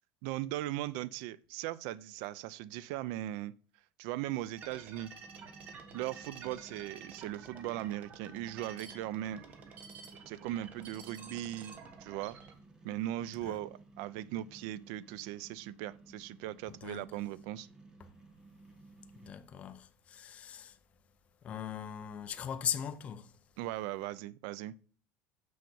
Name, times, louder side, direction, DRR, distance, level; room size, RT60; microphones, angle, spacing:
voice 1, 0.2-3.5 4.0-5.1 5.9-9.4 10.3-11.7 12.0-12.4 12.8-17.7 23.6-24.7, right 14 dB, 70° right, 0.5 m, -38 dB
sound 1, 4.6-12.5, right 5 dB, 30° right, 1.2 m, -51 dB
sound 2, 5.2-19.4, right 3 dB, 15° right, 1.4 m, -57 dB
voice 2, 16.7-17.0 18.0-18.1 19.1-20.8 21.4-23.3, left 8 dB, 25° left, 0.6 m, -39 dB
6.3 x 5.7 x 6.9 m
cardioid pair, 170°, 5 cm